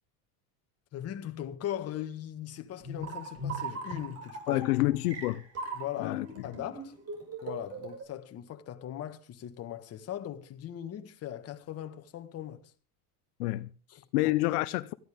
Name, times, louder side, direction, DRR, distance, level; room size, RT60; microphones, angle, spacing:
voice 1, 0.9-4.6 5.7-6.9 7.4-12.7 13.9-14.3, left 11 dB, 35° left, 1.6 m, -39 dB
sound 1, 2.8-8.0, right 2 dB, 35° right, 5.9 m, -39 dB
voice 2, 4.5-5.4 6.0-6.3 13.4-13.7 14.1-14.9, left 18 dB, 85° left, 0.9 m, -28 dB
18.5 x 14.5 x 3.6 m
supercardioid pair, 140°, 44 cm